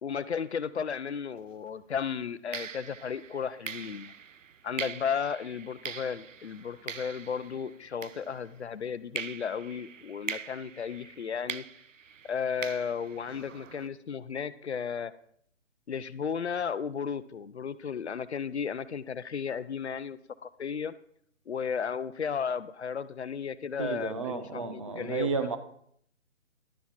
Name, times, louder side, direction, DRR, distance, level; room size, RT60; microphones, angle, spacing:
voice 1, 0.0-4.1 4.6-11.6 12.2-15.1 15.9-20.9 21.5-25.5, left 6 dB, 60° left, 15 dB, 0.6 m, -34 dB
sound 1, 1.4-1.6 2.5-8.7 9.2-13.9, right 7 dB, 80° right, 0.6 m, -42 dB
voice 2, 23.8-25.6, right 5 dB, 25° right, 8 dB, 0.6 m, -32 dB
11.5 x 9.3 x 4.3 m, 0.65 s
figure-of-eight pair, 145°, 38 cm